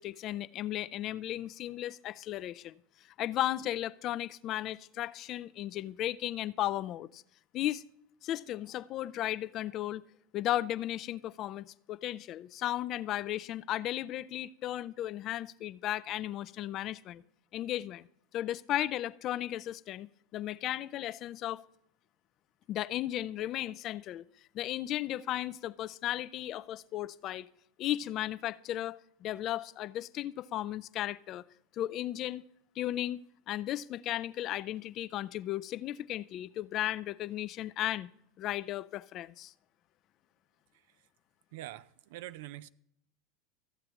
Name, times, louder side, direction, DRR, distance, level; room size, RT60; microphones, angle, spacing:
voice 1, 0.0-2.7 3.2-7.2 7.5-7.8 8.2-10.0 10.3-17.2 17.5-18.1 18.3-21.6 22.7-24.2 24.5-27.5 27.8-31.4 31.7-32.4 32.8-38.1 38.4-39.5, left 13 dB, 45° left, 0.3 m, -35 dB
voice 2, 41.5-42.7, right 15 dB, 70° right, 0.4 m, -44 dB
14.5 x 7.6 x 3.0 m
hypercardioid pair, 95°, 0 cm